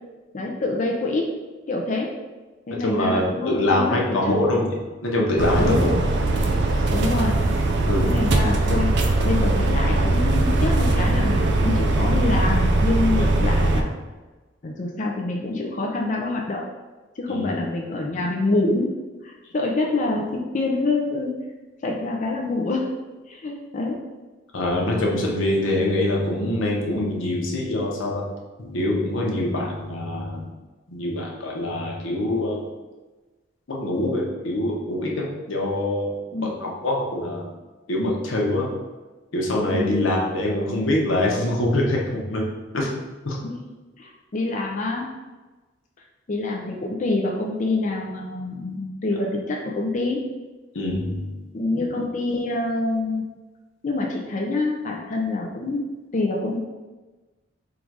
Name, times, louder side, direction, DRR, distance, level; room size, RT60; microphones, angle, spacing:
voice 1, 0.3-1.3 1.7-2.1 2.7-4.4 5.6-5.8 6.9-7.3 8.0-13.9 14.6-16.6 17.2-18.9 19.2-21.3 21.8-22.9 23.3-24.0 36.3-36.5 39.7-39.9 43.4-43.6 44.0-45.1 46.3-50.2 51.5-53.3 53.8-55.8 56.1-56.6, left 2 dB, 40° left, -1 dB, 0.5 m, -26 dB
voice 2, 2.8-6.0 6.7-6.8 7.9-8.1 13.2-13.3 17.3-17.6 19.4-19.5 24.5-28.2 28.6-30.5 30.9-32.7 33.7-36.1 36.4-37.5 37.9-38.7 39.3-42.4 42.7-42.9 43.2-43.4 50.7-51.4, left 1 dB, 90° left, -2 dB, 0.9 m, -24 dB
sound 1, 5.4-13.8, right 2 dB, 60° right, 0.5 m, -20 dB
3.9 x 2.5 x 4.6 m, 1.2 s
head